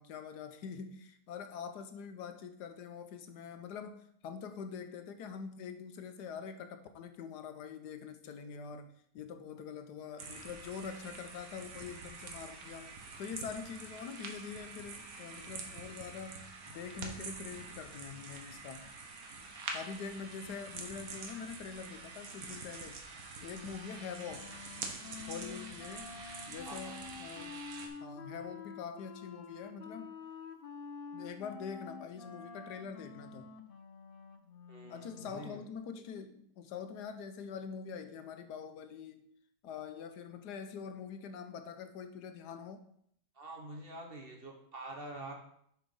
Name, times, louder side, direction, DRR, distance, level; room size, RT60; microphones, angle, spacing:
voice 1, 0.0-12.9 13.2-18.9 19.7-23.0 23.4-24.5 25.3-26.1 26.5-27.6 28.0-30.1 31.1-33.5 34.9-39.3 39.6-42.8, left 6 dB, 90° left, 8 dB, 1.3 m, -44 dB
sound 1, 10.2-27.9, right 4 dB, 65° right, 1.5 m, -46 dB
Wind instrument woodwind instrument, 23.4-35.5, left 6 dB, 65° left, 0.5 m, -49 dB
voice 2, 26.6-27.0 34.7-35.6 43.3-45.3, right 2 dB, 40° right, 1 dB, 1.3 m, -46 dB
7.2 x 4.4 x 5.4 m, 0.69 s
omnidirectional pair, 1.7 m